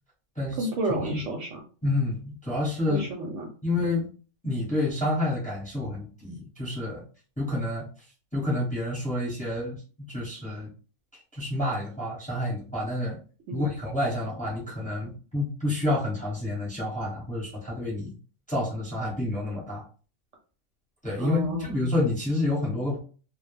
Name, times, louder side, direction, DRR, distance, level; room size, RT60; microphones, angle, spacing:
voice 1, 0.6-1.6 2.9-3.5 13.5-13.7 21.2-21.7, right 2 dB, 70° right, 1 dB, 0.8 m, -31 dB
voice 2, 1.8-3.1 3.6-4.1 4.4-7.0 7.4-7.8 8.3-9.8 10.1-10.7 11.3-13.2 13.5-18.1 18.5-19.8 21.0-23.0, left 1 dB, 5° left, -5 dB, 0.8 m, -29 dB
2.2 x 2.1 x 3.1 m, 0.39 s
omnidirectional pair, 1.5 m